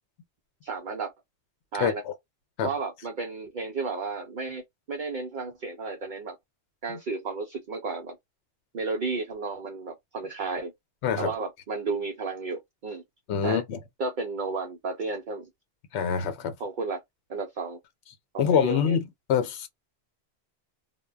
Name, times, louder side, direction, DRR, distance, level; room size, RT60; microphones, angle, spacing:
voice 1, 0.6-1.1 1.7-2.0 2.6-6.4 6.8-8.2 8.7-10.7 11.2-13.0 13.4-13.6 14.0-15.5 16.6-17.0 17.3-17.8 18.3-19.0, right 4 dB, 60° right, 0.6 m, -33 dB
voice 2, 1.8-2.1 2.6-2.7 11.0-11.3 13.3-13.8 15.9-16.5 18.4-19.7, left 7 dB, 80° left, 0.9 m, -25 dB
2.1 x 2.1 x 3.3 m
omnidirectional pair, 1.1 m